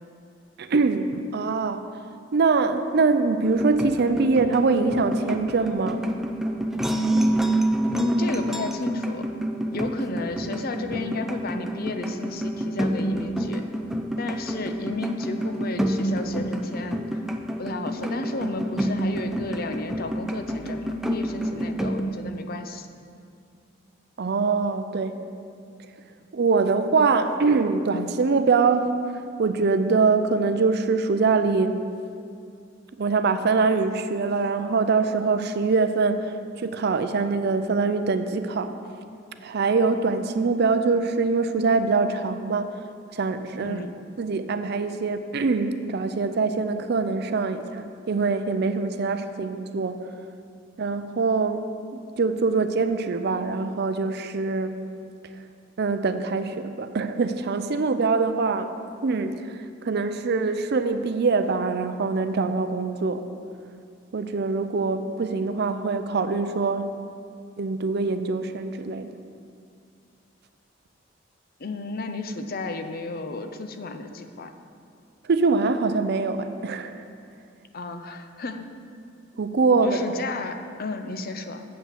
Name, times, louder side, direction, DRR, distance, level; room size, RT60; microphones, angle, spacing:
voice 1, 0.6-1.9 2.3-6.0 24.2-25.2 26.3-29.0 29.4-31.8 32.9-38.7 39.4-42.8 43.1-43.8 44.2-50.1 50.8-51.7 52.2-54.8 55.8-58.7 59.0-63.2 64.1-66.9 67.6-69.1 75.3-76.9 79.4-80.0, right 4 dB, 55° right, 9 dB, 0.5 m, -23 dB
sound 1, 3.4-22.0, right 1 dB, ahead, 0.4 m, -28 dB
voice 2, 7.9-9.3 9.7-13.6 14.2-17.2 17.6-22.9 43.6-43.9 71.6-74.5 77.7-78.7 79.8-81.6, left 2 dB, 50° left, 7 dB, 0.6 m, -33 dB
7.6 x 5.6 x 7.5 m, 2.3 s
head